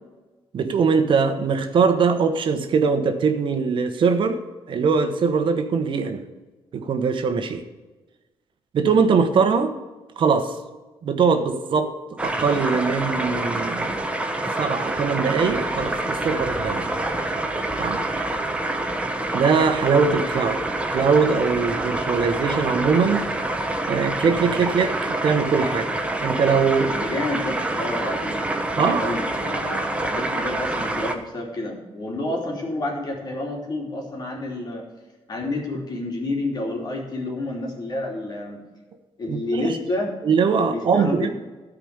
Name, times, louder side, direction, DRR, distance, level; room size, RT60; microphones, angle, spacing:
voice 1, 0.5-4.4 4.7-6.2 6.7-7.7 8.7-9.7 10.2-10.6 11.0-14.0 14.6-16.9 17.8-18.0 19.3-20.6 20.9-23.3 23.9-25.9 26.2-27.0 28.8-29.2 39.3-39.8 40.2-41.3, right 5 dB, 60° right, 7 dB, 1.1 m, -21 dB
sound 1, 12.2-31.1, right 2 dB, 10° right, 1.1 m, -26 dB
voice 2, 26.9-28.4 28.7-34.8 35.3-38.6 39.2-40.1 40.6-41.3, left 2 dB, 45° left, 0 dB, 3.1 m, -29 dB
13.0 x 5.0 x 8.1 m, 1.2 s
cardioid pair, 125°, 10 cm